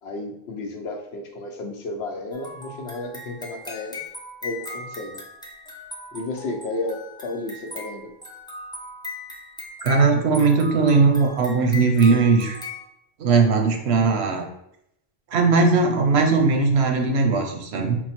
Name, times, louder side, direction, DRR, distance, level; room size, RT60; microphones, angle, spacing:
voice 1, 0.0-4.0 4.4-5.2 6.1-8.1, left 2 dB, 85° left, 4 dB, 0.9 m, -32 dB
sound 1, 2.3-12.9, left 2 dB, 5° left, 0.5 m, -38 dB
voice 2, 9.8-12.6 13.2-14.4 15.3-18.0, right 4 dB, 90° right, 3 dB, 1.0 m, -19 dB
4.4 x 2.0 x 4.2 m, 0.77 s
omnidirectional pair, 1.0 m